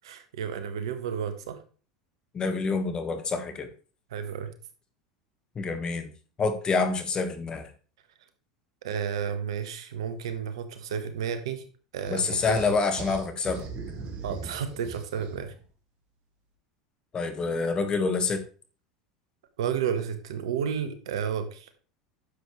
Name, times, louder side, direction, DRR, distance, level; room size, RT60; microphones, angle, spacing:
voice 1, 0.0-1.6 4.1-4.5 8.8-11.6 11.9-12.7 14.2-15.5 19.6-21.7, right 7 dB, 75° right, 9 dB, 1.4 m, -32 dB
voice 2, 2.3-3.7 5.5-6.1 6.4-7.7 12.1-13.7 17.1-18.4, left 4 dB, 30° left, 8 dB, 1.7 m, -27 dB
sound 1, 12.1-15.6, right 4 dB, 50° right, 2.2 m, -40 dB
10.0 x 7.3 x 3.3 m, 0.38 s
hypercardioid pair, 90°, 3 cm